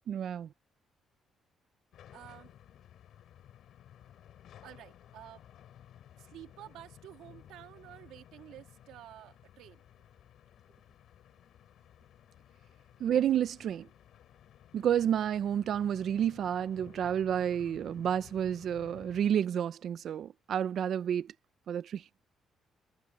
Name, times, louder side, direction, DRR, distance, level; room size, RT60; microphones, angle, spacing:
voice 1, 0.1-0.5 13.0-13.9 14.7-21.3 21.7-22.0, right 9 dB, 65° right, 0.8 m, -30 dB
sound 1, 1.9-19.3, left 11 dB, 75° left, 4.7 m, -56 dB
voice 2, 2.1-2.5 4.6-5.4 6.2-9.8, right 13 dB, 85° right, 3.4 m, -51 dB
cardioid pair, 90°, 0 cm